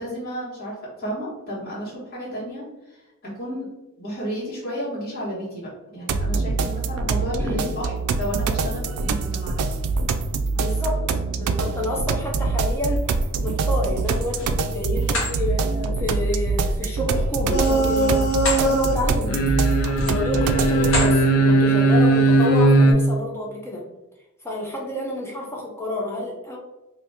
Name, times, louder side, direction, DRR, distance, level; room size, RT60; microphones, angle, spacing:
voice 1, 0.0-3.7 4.0-7.9 8.2-9.8 20.1-20.2, equal, 45° left, -8 dB, 1.4 m, -32 dB
sound 1, 6.1-21.1, right 4 dB, 85° right, 0.3 m, -24 dB
voice 2, 7.4-7.7 10.5-19.3 20.1-23.8 24.4-26.6, left 1 dB, 10° left, -2 dB, 0.5 m, -29 dB
sound 2, 14.0-14.6 15.0-15.3 17.5-18.7 19.1-19.3 19.9-20.3 20.8-21.2, left 2 dB, 65° left, 1.1 m, -28 dB
sound 3, 17.5-18.9 19.2-22.9, right 2 dB, 80° left, 0.6 m, -18 dB
2.7 x 2.7 x 3.4 m, 1.0 s
head